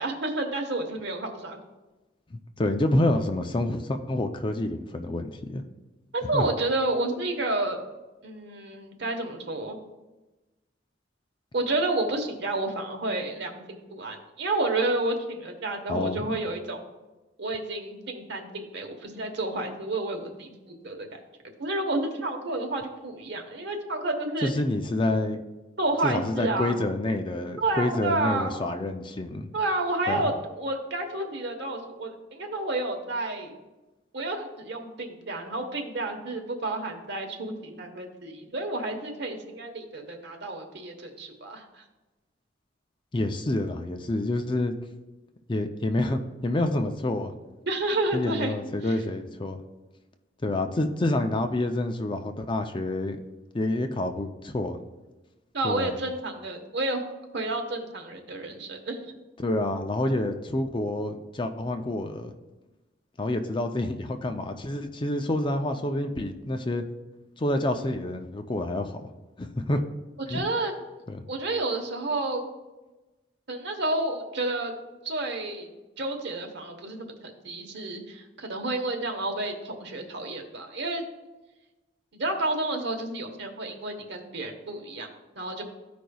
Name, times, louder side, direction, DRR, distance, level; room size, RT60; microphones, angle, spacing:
voice 1, 0.0-1.6 6.1-7.8 8.2-9.8 11.5-16.8 17.4-21.2 21.6-24.5 25.8-26.7 27.6-28.5 29.5-30.3 30.6-33.5 34.1-41.8 47.7-48.6 48.8-48.9 55.5-57.1 57.3-59.1 70.3-70.7 71.3-72.4 73.5-74.7 75.0-75.7 76.0-81.1 82.1-85.1 85.3-85.6, right 2 dB, 60° right, 4 dB, 1.1 m, -30 dB
voice 2, 2.6-5.6 6.3-6.5 15.9-16.3 24.4-25.4 26.0-29.5 30.1-30.3 43.1-44.7 45.5-47.3 48.1-49.6 50.4-53.2 53.5-54.8 55.6-56.0 59.4-62.3 63.2-66.8 67.4-69.0 69.4-69.8 70.3-70.4 71.1-71.2, left 1 dB, 25° left, 6 dB, 0.5 m, -28 dB
14.0 x 5.1 x 2.3 m, 1.1 s
head